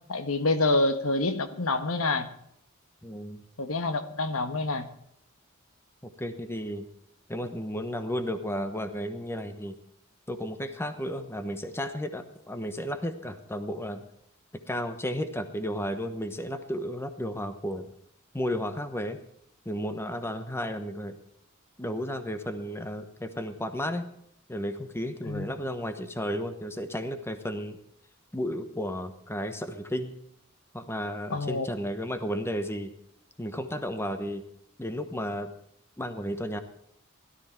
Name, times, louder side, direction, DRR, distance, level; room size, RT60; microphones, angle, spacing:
voice 1, 0.1-2.3 3.6-4.9 25.2-25.5 31.3-31.7, left 2 dB, 75° left, 1.3 m, -27 dB
voice 2, 3.0-3.4 6.2-6.9 7.3-9.8 10.3-14.1 14.7-17.9 18.3-19.2 19.6-21.2 21.8-24.1 24.5-27.8 28.3-30.1 30.7-32.9 33.4-34.4 34.8-35.5 36.0-36.6, equal, 10° left, 1.1 m, -33 dB
17.0 x 12.5 x 4.5 m
head